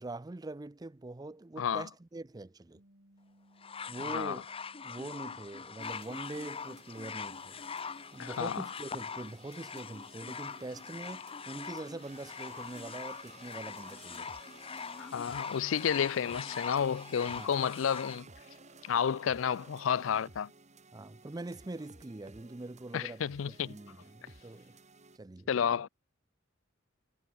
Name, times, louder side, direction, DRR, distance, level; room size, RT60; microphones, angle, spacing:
voice 1, 0.0-2.8 3.9-4.4 4.8-7.6 8.1-14.3 17.3-17.5 20.9-23.3 23.7-24.8 25.2-25.7, right 2 dB, 20° right, 0.5 m, -43 dB
voice 2, 1.6-1.9 4.1-4.4 8.2-8.7 15.0-18.3 18.8-20.5 22.9-23.8 25.5-25.9, left 7 dB, 75° left, 0.4 m, -31 dB
Bass guitar, 2.7-9.0, equal, 60° right, 4.9 m, -68 dB
sound 1, 3.6-18.2 19.1-19.2, left 6 dB, 30° left, 0.8 m, -42 dB
sound 2, 5.8-25.2, right 4 dB, 35° right, 3.6 m, -56 dB
head